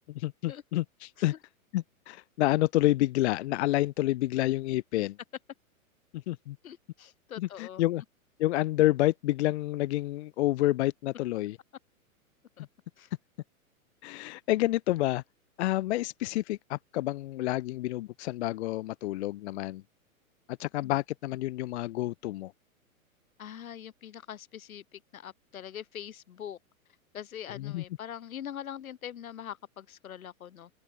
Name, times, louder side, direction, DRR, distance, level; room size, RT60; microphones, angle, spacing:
voice 1, 0.1-1.3 1.7-5.2 6.1-6.6 7.4-8.0 8.4-11.6 14.0-15.2 15.6-19.8 20.5-22.5 27.6-27.8, left 16 dB, 55° left, 0.5 m, -29 dB
voice 2, 6.6-7.8 12.6-12.7 13.0-13.1 20.8-21.0 23.4-26.6 27.1-30.7, left 10 dB, 75° left, 1.8 m, -43 dB
open air
hypercardioid pair, 120°, 42 cm